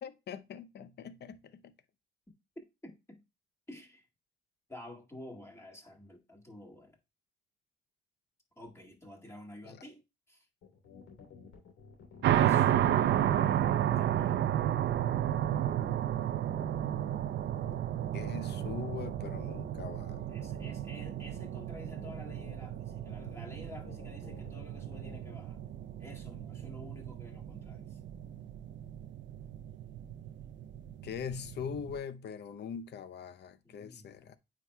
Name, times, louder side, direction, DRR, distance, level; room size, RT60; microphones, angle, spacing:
voice 1, 0.0-1.7 9.7-9.8 18.1-20.2 31.0-34.4, left 7 dB, 60° left, 0.6 m, -42 dB
voice 2, 2.6-3.2 3.7-4.1 4.7-7.0 8.6-10.0 10.3-10.5 12.3-13.1 13.5-14.5 20.3-25.6 26.0-28.0 33.6-34.3, left 1 dB, 15° left, 1.9 m, -50 dB
sound 1, 10.6-25.3, left 5 dB, 90° left, 3.1 m, -53 dB
sound 2, 12.2-32.0, right 11 dB, 65° right, 0.5 m, -32 dB
9.0 x 4.8 x 2.2 m
cardioid pair, 90°, 20 cm